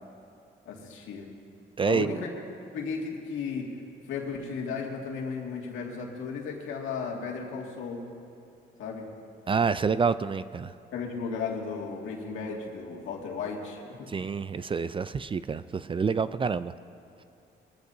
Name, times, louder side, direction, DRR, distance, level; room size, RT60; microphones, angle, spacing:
voice 1, 0.7-1.3 1.8-2.4 2.7-3.8 4.1-8.1 8.8-9.1 10.9-14.1, left 5 dB, 85° left, -1 dB, 2.1 m, -35 dB
voice 2, 1.8-2.2 9.5-10.7 14.1-16.7, right 5 dB, 25° right, 14 dB, 0.3 m, -27 dB
21.0 x 14.5 x 2.7 m, 2.6 s
cardioid pair, 90°, 20 cm